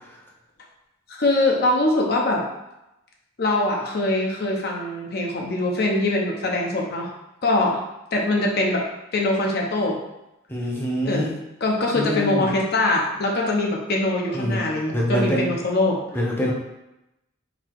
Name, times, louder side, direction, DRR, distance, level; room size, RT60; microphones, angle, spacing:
voice 1, 1.1-2.4 3.4-7.1 7.4-7.8 8.1-8.8 9.1-10.0 11.0-11.3 11.6-16.0, left 2 dB, 55° left, -1 dB, 0.7 m, -22 dB
voice 2, 10.5-11.3 11.9-12.5 14.3-15.5 16.1-16.5, equal, 10° left, -3 dB, 0.7 m, -25 dB
4.0 x 2.8 x 4.5 m, 0.92 s
head